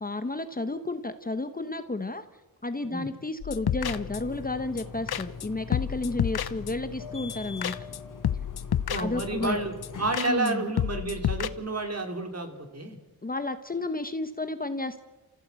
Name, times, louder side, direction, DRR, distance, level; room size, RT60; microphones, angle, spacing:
voice 1, 0.0-2.2 2.6-7.7 8.9-9.6 10.3-10.6 13.2-15.0, left 2 dB, 25° left, 10 dB, 1.0 m, -32 dB
sound 1, 3.4-4.4 4.8-4.9 5.1-5.5 5.7-6.9 7.3-7.4 7.6-8.0 8.2-9.5 9.8-9.9 10.1-10.5 10.8-11.5, left 10 dB, 85° left, 0.8 m, -30 dB
Burping eructation, 3.8-10.2, left 5 dB, 55° left, 2.2 m, -41 dB
voice 2, 8.9-13.0, right 2 dB, 40° right, 5 dB, 3.4 m, -30 dB
29.0 x 15.0 x 8.2 m, 1.3 s
wide cardioid pair, 90°, 37 cm